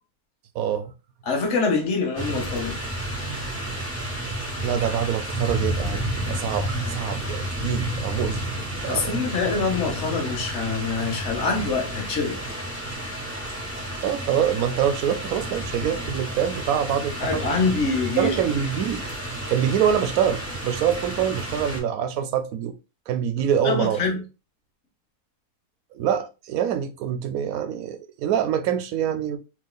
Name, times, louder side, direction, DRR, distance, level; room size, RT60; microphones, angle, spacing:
voice 1, 0.5-0.9 4.6-8.4 8.8-9.2 14.0-17.5 18.2-19.0 19.5-22.7 23.1-24.0 25.9-29.4, right 9 dB, 75° right, 1.0 m, -25 dB
voice 2, 1.2-2.8 8.9-12.4 17.2-18.4 23.6-24.2, left 4 dB, 55° left, 1.1 m, -25 dB
sound 1, 2.2-21.8, right 1 dB, 10° left, 1.3 m, -31 dB
3.6 x 2.9 x 2.2 m
omnidirectional pair, 1.6 m